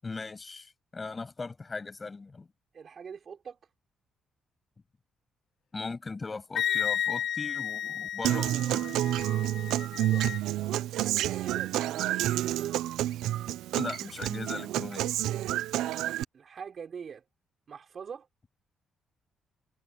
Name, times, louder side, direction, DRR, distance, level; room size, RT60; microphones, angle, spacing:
voice 1, 0.0-2.5 5.7-8.9 13.8-15.1, left 3 dB, 30° left, 7.7 m, -38 dB
voice 2, 2.7-3.6 9.8-10.3 10.9-12.2 16.3-17.2 17.7-18.3, right 6 dB, 50° right, 4.7 m, -44 dB
Wind instrument woodwind instrument, 6.6-10.4, left 9 dB, 60° left, 0.6 m, -33 dB
Human voice / Acoustic guitar, 8.2-16.2, right 13 dB, 90° right, 0.8 m, -29 dB
cardioid pair, 90°, 0 cm